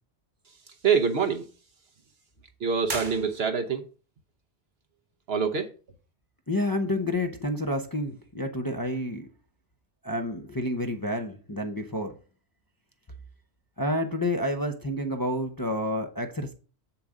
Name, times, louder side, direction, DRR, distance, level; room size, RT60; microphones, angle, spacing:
voice 1, 0.8-1.5 2.6-3.8 5.3-5.7, right 6 dB, 60° right, 1.1 m, -25 dB
sound 1, 2.8-3.9, right 3 dB, 40° right, 1.3 m, -37 dB
voice 2, 6.5-9.3 10.0-12.1 13.8-16.5, left 1 dB, 20° left, 0.8 m, -29 dB
7.6 x 7.1 x 3.8 m
omnidirectional pair, 1.2 m